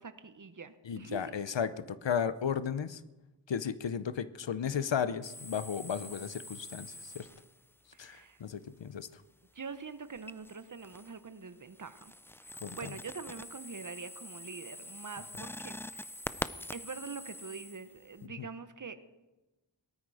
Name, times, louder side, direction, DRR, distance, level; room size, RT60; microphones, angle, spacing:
voice 1, 0.0-1.4 7.9-8.4 9.5-12.1 12.4-16.1 16.7-19.0, right 5 dB, 45° right, 11 dB, 1.1 m, -45 dB
voice 2, 0.8-3.0 3.5-7.3 8.0-9.2 12.5-12.9 18.2-18.5, left 7 dB, 80° left, 15 dB, 0.8 m, -34 dB
sound 1, 5.2-7.7 10.1-11.2 11.6-18.2, left 1 dB, 5° left, 0.4 m, -45 dB
18.0 x 13.0 x 4.9 m, 1.1 s
wide cardioid pair, 75°, 44 cm